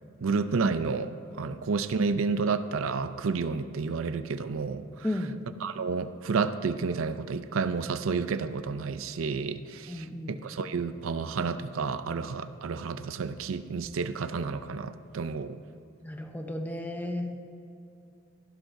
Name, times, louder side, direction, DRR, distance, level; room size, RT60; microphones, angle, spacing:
voice 1, 0.2-5.1 5.6-15.6, right 4 dB, 80° right, 12 dB, 0.5 m, -30 dB
voice 2, 5.0-5.4 9.9-10.4 16.0-17.3, left 1 dB, 10° left, 4 dB, 0.7 m, -33 dB
15.0 x 12.0 x 2.6 m, 2.7 s
head